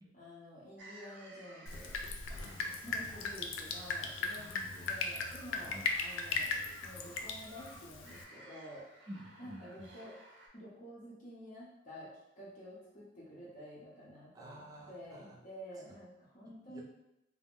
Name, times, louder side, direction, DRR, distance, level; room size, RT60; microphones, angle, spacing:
voice 1, 0.1-2.0 2.8-6.5 6.8-8.9 9.4-10.1 10.5-14.6 14.9-16.8, equal, 40° left, -7 dB, 0.6 m, -50 dB
sound 1, 0.8-10.5, right 2 dB, 70° right, 0.6 m, -56 dB
Drip, 1.7-8.2, left 4 dB, 80° left, 0.3 m, -38 dB
voice 2, 2.3-3.1 4.5-4.7 5.6-5.9 9.1-9.9 14.3-15.4 16.7-16.8, equal, 20° right, -2 dB, 0.4 m, -51 dB
2.4 x 2.0 x 3.4 m, 0.89 s
head